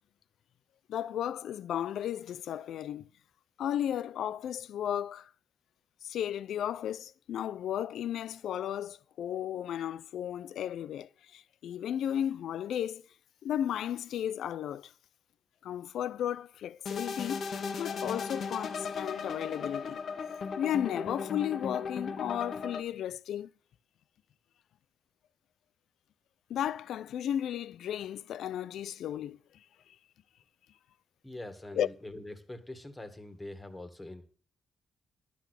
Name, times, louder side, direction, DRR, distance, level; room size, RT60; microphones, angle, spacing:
voice 1, 0.9-3.1 3.6-5.3 6.0-13.0 13.4-14.9 15.6-17.4 17.8-20.0 20.6-23.5 26.5-29.4 31.7-31.9, left 10 dB, 80° left, 0.5 m, -34 dB
sound 1, 16.9-22.8, left 5 dB, 55° left, 1.4 m, -37 dB
voice 2, 31.2-34.2, left 2 dB, 15° left, 1.7 m, -44 dB
12.0 x 6.2 x 8.1 m
cardioid pair, 140°, 0 cm